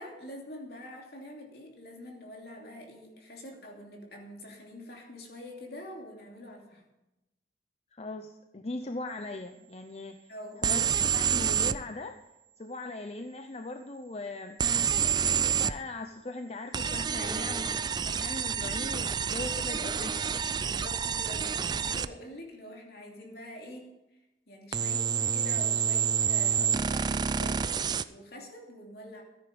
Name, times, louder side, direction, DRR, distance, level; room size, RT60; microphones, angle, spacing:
voice 1, 0.0-6.9 10.3-10.6 17.2-17.3 20.6-23.9 24.5-27.6 28.0-29.2, left 1 dB, 60° left, 0 dB, 2.8 m, -45 dB
voice 2, 7.9-10.3 10.6-12.2 12.6-14.6 15.4-17.7 18.0-20.4, left 2 dB, 35° left, 7 dB, 0.6 m, -39 dB
sound 1, 10.6-11.8 14.6-15.8 16.7-22.1 24.7-28.0, right 7 dB, 25° right, 0.3 m, -28 dB
14.0 x 9.8 x 5.1 m, 0.97 s
head